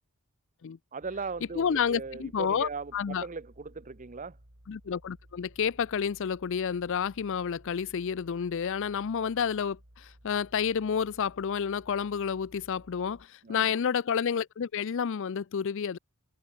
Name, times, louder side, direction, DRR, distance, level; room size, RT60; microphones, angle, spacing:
voice 1, 0.9-4.4 13.4-13.8, right 4 dB, 35° right, 0.7 m, -38 dB
sound 1, 1.0-13.3, right 1 dB, 60° right, 4.1 m, -57 dB
voice 2, 1.5-3.3 4.7-16.0, left 7 dB, 55° left, 0.4 m, -30 dB
head